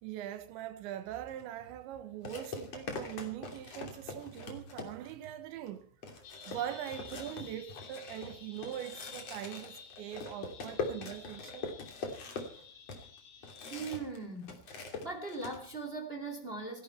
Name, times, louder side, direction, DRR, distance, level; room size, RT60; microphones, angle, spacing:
voice 1, 0.0-5.9 6.5-11.8, right 11 dB, 70° right, 3.4 m, -42 dB
sound 1, 1.3-1.4 2.2-5.2 5.7-5.8 6.0-14.2 14.4-15.6, left 4 dB, 35° left, 3.3 m, -42 dB
sound 2, 6.2-14.0, left 6 dB, 85° left, 6.3 m, -53 dB
voice 2, 13.7-16.8, right 3 dB, 25° right, 1.4 m, -40 dB
27.5 x 11.5 x 4.5 m
omnidirectional pair, 5.8 m